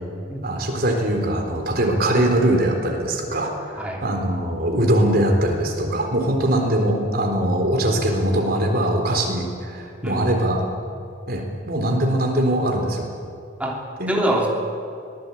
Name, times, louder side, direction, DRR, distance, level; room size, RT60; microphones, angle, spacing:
voice 1, 0.4-10.6 11.3-13.1 14.0-14.2, right 1 dB, 50° right, 2 dB, 4.0 m, -21 dB
voice 2, 10.0-10.4 13.6-13.8 14.1-14.5, right 1 dB, 5° right, -1 dB, 3.1 m, -24 dB
24.0 x 19.0 x 8.7 m, 2.5 s
head